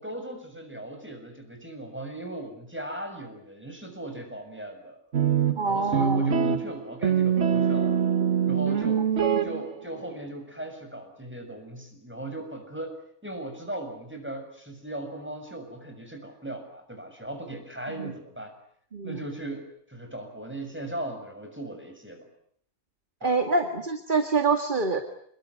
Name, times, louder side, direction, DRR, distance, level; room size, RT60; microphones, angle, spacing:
voice 1, 0.0-5.0 5.7-7.9 8.5-9.0 9.4-12.9 13.2-18.5 19.0-22.3 23.2-23.4, right 1 dB, 10° right, 6 dB, 6.8 m, -38 dB
sound 1, 5.1-10.0, right 7 dB, 60° right, 1.6 m, -24 dB
voice 2, 5.6-6.3 9.3-9.4 18.0-18.1 18.9-19.2 23.2-25.0, right 4 dB, 35° right, 6 dB, 2.1 m, -26 dB
28.0 x 21.5 x 9.7 m, 0.68 s
omnidirectional pair, 1.4 m